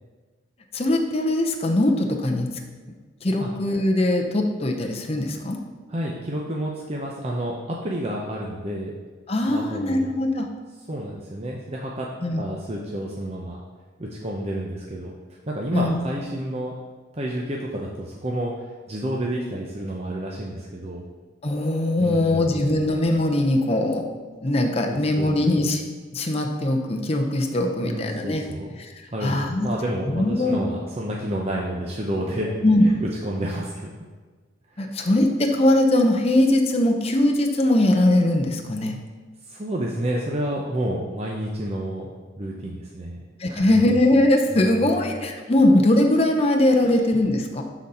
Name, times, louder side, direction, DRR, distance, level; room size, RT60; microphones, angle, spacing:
voice 1, 0.7-2.5 3.2-5.6 9.3-10.5 12.2-12.4 15.7-16.0 21.4-24.0 24.4-25.8 26.1-28.4 29.2-29.7 30.1-30.6 32.6-32.9 34.8-39.0 43.4-47.6, left 1 dB, 30° left, 2 dB, 0.7 m, -21 dB
voice 2, 5.9-8.9 9.5-10.1 10.9-12.1 12.4-13.6 14.0-15.2 15.5-16.7 17.1-18.5 18.9-21.0 22.0-22.6 24.9-25.4 27.8-28.8 29.1-32.5 32.8-33.9 34.7-35.0 39.5-44.0 44.5-45.1 46.8-47.0, right 1 dB, 30° right, -2 dB, 0.7 m, -30 dB
11.5 x 4.0 x 4.3 m, 1.4 s
head